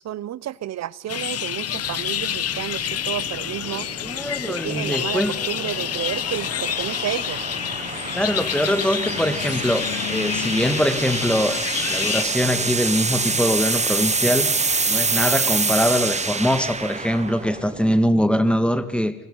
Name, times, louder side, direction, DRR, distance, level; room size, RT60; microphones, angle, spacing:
voice 1, 0.0-3.9 4.4-7.5, right 12 dB, 60° right, 0.9 m, -31 dB
sound 1, 1.1-12.2, left 10 dB, 55° left, 0.9 m, -28 dB
sound 2, 1.7-18.0, right 4 dB, 20° right, 1.4 m, -27 dB
voice 2, 4.0-5.3 8.1-11.6 11.9-14.5 14.9-19.1, equal, 5° left, 1.8 m, -22 dB
28.0 x 18.5 x 5.6 m
cardioid pair, 90°, 30 cm